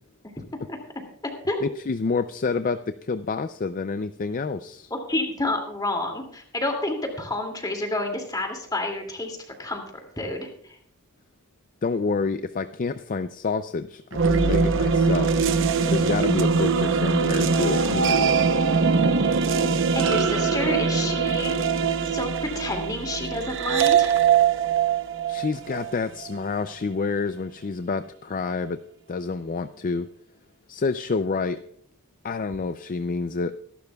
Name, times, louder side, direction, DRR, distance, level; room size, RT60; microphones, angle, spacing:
voice 1, 1.6-4.9 11.8-15.3 15.9-18.4 25.3-28.8 29.1-30.1 30.7-31.6 32.2-33.5, left 4 dB, 40° left, 11 dB, 0.4 m, -28 dB
voice 2, 4.9-9.8 10.2-10.8 19.9-21.8 22.1-24.2, left 2 dB, 20° left, 3 dB, 2.4 m, -29 dB
sound 1, 14.1-26.3, right 5 dB, 60° right, 0.8 m, -22 dB
24.0 x 12.0 x 2.3 m, 0.63 s
head